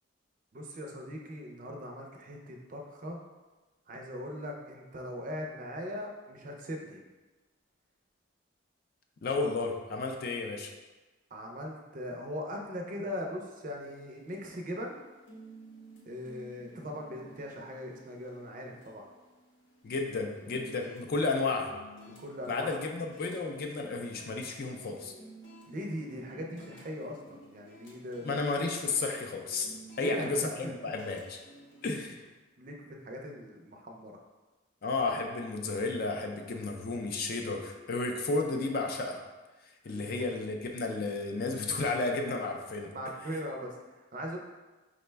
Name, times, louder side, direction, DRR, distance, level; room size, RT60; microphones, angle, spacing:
voice 1, 0.5-3.2 3.9-7.0 11.3-15.0 16.1-19.1 22.2-22.9 25.7-28.4 30.0-30.7 32.6-34.2 39.8-40.1 42.9-44.4, equal, 40° right, 1 dB, 0.4 m, -40 dB
voice 2, 9.2-10.7 19.8-21.7 22.5-25.1 28.2-31.4 31.8-32.2 34.8-39.2 39.8-42.9, left 3 dB, 45° left, 3 dB, 0.4 m, -32 dB
sound 1, 13.8-31.9, right 1 dB, 65° left, 0.7 m, -54 dB
4.9 x 2.1 x 3.3 m, 1.2 s
head